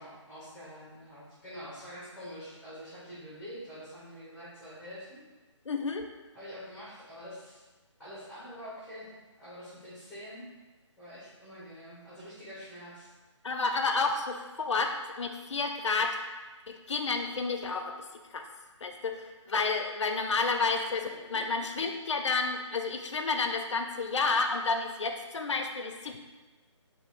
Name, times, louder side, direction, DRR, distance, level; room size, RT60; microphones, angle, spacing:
voice 1, 0.0-5.2 6.3-7.6 8.0-9.1 9.4-10.4 11.0-13.1 21.1-21.4, equal, ahead, -12 dB, 0.8 m, -46 dB
voice 2, 5.7-6.0 13.4-16.2 16.7-18.0 18.3-18.4 18.8-26.2, left 4 dB, 65° left, 4 dB, 0.5 m, -30 dB
2.7 x 2.6 x 4.2 m, 1.2 s
figure-of-eight pair, 160°, 16 cm